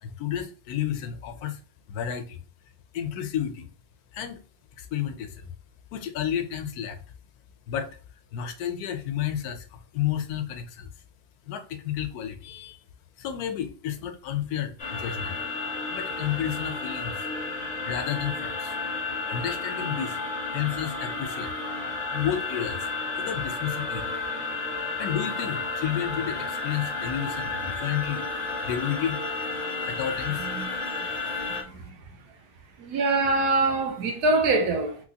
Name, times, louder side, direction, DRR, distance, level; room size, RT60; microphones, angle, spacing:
voice 1, 0.0-1.6 1.9-2.4 2.9-3.7 4.1-4.4 4.8-5.5 5.9-7.0 7.7-8.0 8.3-9.7 9.9-10.9 11.5-12.8 13.2-15.4 15.9-17.1 17.9-18.8 19.3-20.2 20.5-21.5 22.1-22.9 23.2-24.2 25.0-29.2 29.8-30.5, left 10 dB, 85° left, 1.1 m, -31 dB
sound 1, 14.8-31.6, left 3 dB, 40° left, 0.6 m, -32 dB
voice 2, 31.5-32.0 32.8-35.0, right 3 dB, 90° right, 1.3 m, -24 dB
3.2 x 3.1 x 2.7 m
omnidirectional pair, 1.6 m